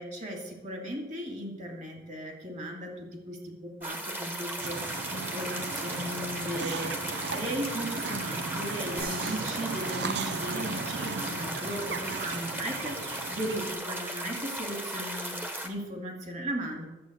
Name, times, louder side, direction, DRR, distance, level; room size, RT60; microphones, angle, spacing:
voice 1, 0.0-16.8, equal, 40° right, 2 dB, 2.4 m, -37 dB
sound 1, 3.8-15.7, right 1 dB, 10° right, 1.2 m, -36 dB
sound 2, 4.6-13.7, right 4 dB, 85° right, 0.7 m, -37 dB
sound 3, 9.0-11.7, right 3 dB, 70° right, 5.5 m, -46 dB
11.0 x 7.5 x 8.0 m, 1.1 s
head